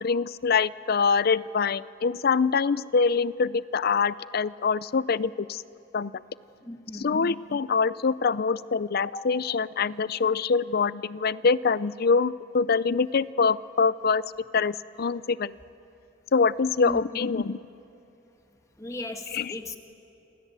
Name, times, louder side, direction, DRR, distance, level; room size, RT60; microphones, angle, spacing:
voice 1, 0.0-5.6 5.9-6.2 6.9-15.5 16.3-17.6 19.3-19.5, left 5 dB, 55° left, 18 dB, 0.5 m, -25 dB
voice 2, 6.6-7.2 9.1-9.2 16.8-17.0 18.8-19.8, left 1 dB, 15° left, 4 dB, 1.8 m, -36 dB
28.5 x 25.5 x 8.1 m, 2.9 s
head